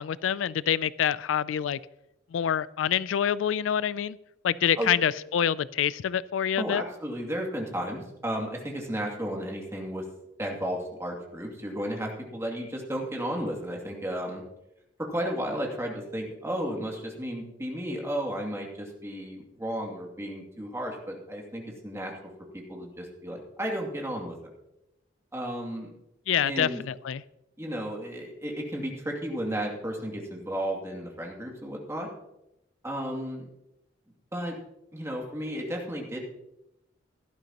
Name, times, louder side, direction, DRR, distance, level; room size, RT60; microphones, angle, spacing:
voice 1, 0.0-1.8 2.3-4.2 4.4-6.8 26.3-27.2, left 9 dB, 75° left, 19 dB, 0.3 m, -26 dB
voice 2, 6.6-10.0 10.4-14.4 15.0-22.1 22.5-24.3 25.3-25.9 26.4-26.8 27.6-32.1 32.8-33.5 34.3-34.6 34.9-36.2, equal, 15° right, 0 dB, 2.4 m, -33 dB
16.5 x 12.0 x 2.9 m, 0.88 s
head